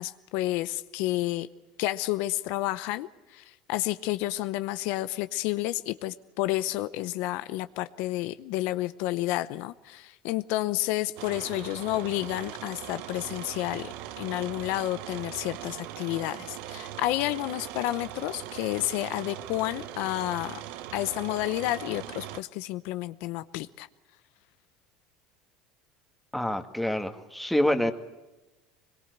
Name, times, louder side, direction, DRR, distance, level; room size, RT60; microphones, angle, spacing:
voice 1, 0.0-1.5 1.8-20.6 20.9-23.9, left 16 dB, 70° left, 13 dB, 0.8 m, -30 dB
sound 1, 11.2-22.4, right 12 dB, 70° right, 1.1 m, -40 dB
voice 2, 26.3-27.9, left 1 dB, 5° left, 7 dB, 1.9 m, -26 dB
22.5 x 22.0 x 8.1 m, 1.1 s
supercardioid pair, 110°, 3 cm